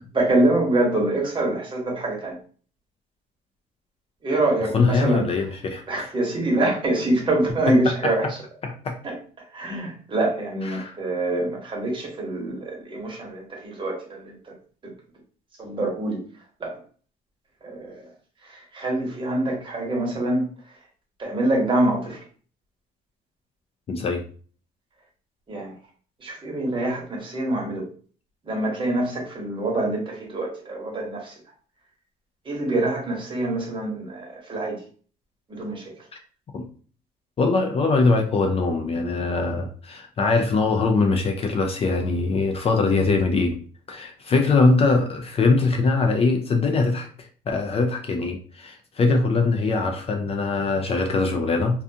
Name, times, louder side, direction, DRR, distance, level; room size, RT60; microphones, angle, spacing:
voice 1, 0.1-2.4 4.2-5.5 5.9-8.4 9.0-14.5 15.6-16.2 16.6-16.8 17.6-18.0 18.4-20.7 21.2-22.2 25.5-25.7 26.2-27.9 28.4-31.3 32.4-34.8 35.5-36.1, right 2 dB, 30° right, -1 dB, 1.1 m, -25 dB
voice 2, 4.7-6.1 7.8-8.1 8.6-9.0 10.7-11.0 23.9-24.2 36.5-36.6 37.4-43.6 43.9-51.8, left 3 dB, 35° left, 3 dB, 0.4 m, -22 dB
2.4 x 2.3 x 2.7 m, 0.43 s
cardioid pair, 110°, 17 cm